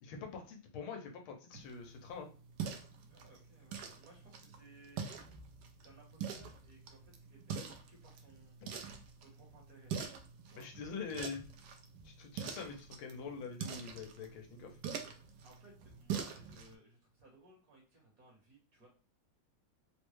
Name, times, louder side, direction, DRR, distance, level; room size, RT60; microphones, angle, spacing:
voice 1, 0.0-2.3 8.6-8.7 10.6-11.4 12.0-14.8, left 5 dB, 85° left, 3 dB, 1.6 m, -45 dB
sound 1, 1.5-16.7, right 7 dB, 80° right, 0.9 m, -45 dB
voice 2, 3.0-5.0 5.8-8.6 9.2-9.9 10.4-10.7 15.4-18.9, right 2 dB, 50° right, -1 dB, 1.3 m, -61 dB
3.9 x 2.1 x 3.1 m, 0.36 s
omnidirectional pair, 2.3 m